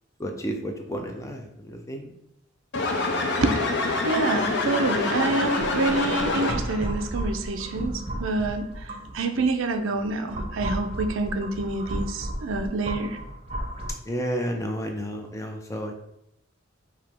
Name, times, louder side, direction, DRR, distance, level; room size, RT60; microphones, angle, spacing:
voice 1, 0.2-2.1 14.1-15.9, equal, 15° left, 3 dB, 0.4 m, -31 dB
sound 1, 2.7-6.9, left 2 dB, 55° left, 0.6 m, -26 dB
voice 2, 4.0-13.2, right 3 dB, 70° right, 6 dB, 0.5 m, -27 dB
sound 2, 5.6-9.5 10.0-13.9, right 1 dB, 25° right, 0.7 m, -33 dB
4.7 x 2.9 x 3.5 m, 0.78 s
head